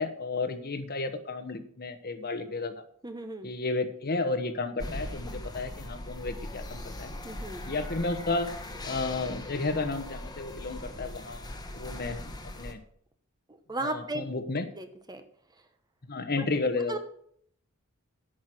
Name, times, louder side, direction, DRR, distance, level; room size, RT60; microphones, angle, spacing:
voice 1, 0.0-2.8 3.4-7.1 7.6-8.5 8.8-11.4 11.7-12.8 13.8-14.7 16.0-17.0, left 3 dB, 45° left, 9 dB, 1.2 m, -32 dB
voice 2, 3.0-3.5 7.2-7.7 13.7-14.2 14.8-15.2 16.9-17.0, right 2 dB, 20° right, 8 dB, 1.0 m, -35 dB
sound 1, 4.8-12.7, left 1 dB, 20° left, 1.3 m, -40 dB
11.0 x 6.3 x 7.7 m, 0.65 s
head